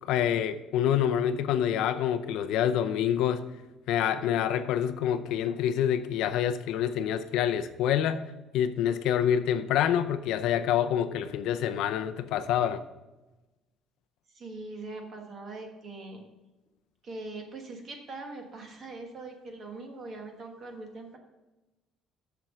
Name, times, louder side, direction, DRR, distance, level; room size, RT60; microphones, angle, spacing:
voice 1, 0.0-3.4 3.9-8.2 8.5-12.8, left 9 dB, 65° left, 10 dB, 0.5 m, -27 dB
voice 2, 14.3-16.2 17.0-21.2, right 2 dB, 30° right, 4 dB, 1.4 m, -42 dB
7.5 x 6.9 x 6.2 m, 1.1 s
cardioid pair, 180°, 0 cm